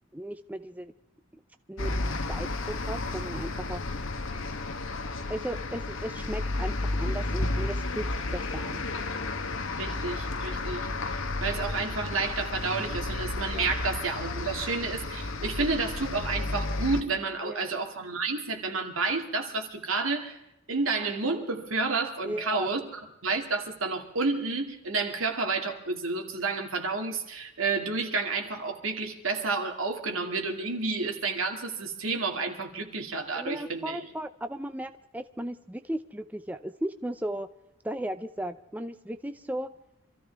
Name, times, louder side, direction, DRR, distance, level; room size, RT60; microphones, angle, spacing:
voice 1, 0.1-0.9 1.3-1.4 1.7-3.8 5.3-8.8 13.5-13.7 17.4-17.7 22.2-22.7 33.4-37.5 37.8-39.7, right 1 dB, 10° right, 0.6 m, -36 dB
sound 1, 1.8-17.0, left 2 dB, 70° left, 1.2 m, -32 dB
voice 2, 9.8-20.4 20.7-22.8 23.2-34.0, right 3 dB, 85° right, 2.4 m, -30 dB
26.5 x 14.5 x 3.5 m
head